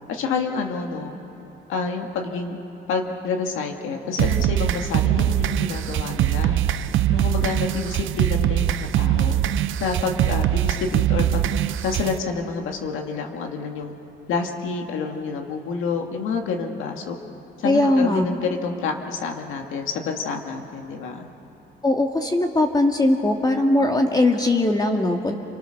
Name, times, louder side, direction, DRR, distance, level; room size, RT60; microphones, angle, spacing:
voice 1, 0.1-1.1 1.7-2.6 2.9-6.6 7.1-9.4 9.8-11.5 11.8-13.9 14.3-17.2 17.6-21.3, left 5 dB, 90° left, 3 dB, 2.1 m, -28 dB
sound 1, 4.2-12.2, right 12 dB, 80° right, 0.7 m, -22 dB
voice 2, 17.6-18.2 21.8-25.4, left 2 dB, 20° left, 3 dB, 1.9 m, -20 dB
29.0 x 23.0 x 6.6 m, 2.9 s
cardioid pair, 90°, 20 cm